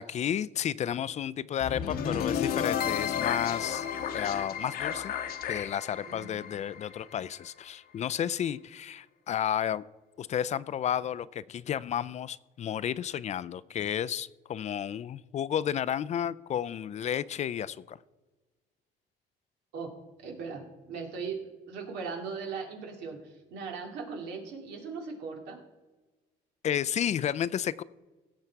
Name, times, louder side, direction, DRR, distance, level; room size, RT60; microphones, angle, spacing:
voice 1, 0.0-3.9 4.1-5.1 5.5-9.8 10.2-18.0 26.6-27.8, left 9 dB, 45° left, 18 dB, 0.4 m, -32 dB
sound 1, 1.6-7.7, left 8 dB, 65° left, 1.0 m, -33 dB
voice 2, 6.1-6.5 19.7-19.9 20.2-25.6, right 5 dB, 90° right, 2 dB, 2.5 m, -39 dB
16.5 x 6.6 x 4.6 m, 1.2 s
cardioid pair, 110°, 17 cm